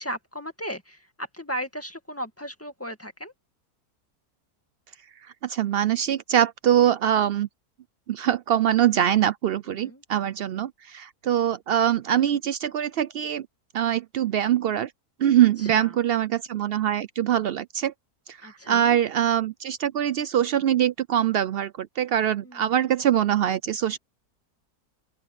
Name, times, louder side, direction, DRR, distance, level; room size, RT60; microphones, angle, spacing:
voice 1, 0.0-3.3 9.7-10.0 15.6-16.0 18.4-19.0 22.4-22.7, equal, 10° left, 2.1 m, -36 dB
voice 2, 5.4-7.5 8.1-13.5 13.7-14.9 15.2-17.9 18.3-24.0, right 10 dB, 90° right, 0.5 m, -23 dB
open air
omnidirectional pair, 1.6 m